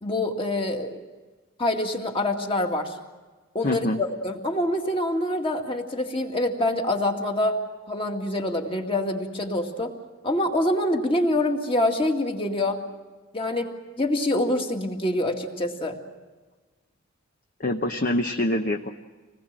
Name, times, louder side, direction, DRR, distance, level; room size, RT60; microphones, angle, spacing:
voice 1, 0.0-1.0 1.6-3.0 3.5-7.6 7.9-9.9 10.2-12.8 13.3-13.7 14.0-16.0, left 1 dB, 25° left, 3 dB, 2.1 m, -25 dB
voice 2, 3.6-4.0 17.6-18.9, left 1 dB, 40° left, 4 dB, 0.9 m, -25 dB
26.0 x 19.5 x 7.5 m, 1.3 s
head